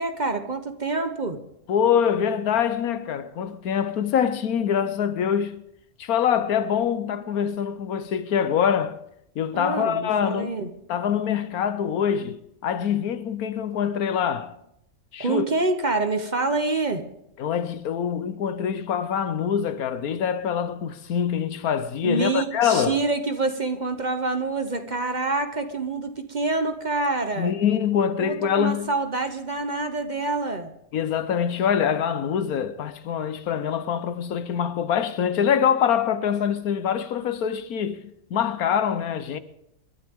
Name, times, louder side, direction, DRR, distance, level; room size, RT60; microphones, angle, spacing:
voice 1, 0.0-1.4 9.5-10.7 15.2-17.0 22.0-27.5 28.2-30.7, right 3 dB, 35° right, 1.0 m, -26 dB
voice 2, 1.7-5.6 6.0-9.0 9.3-10.5 10.9-14.6 15.1-15.4 17.4-23.0 27.4-28.9 30.9-38.0 38.3-39.4, left 8 dB, 85° left, 1.4 m, -24 dB
27.0 x 12.5 x 3.6 m
omnidirectional pair, 1.5 m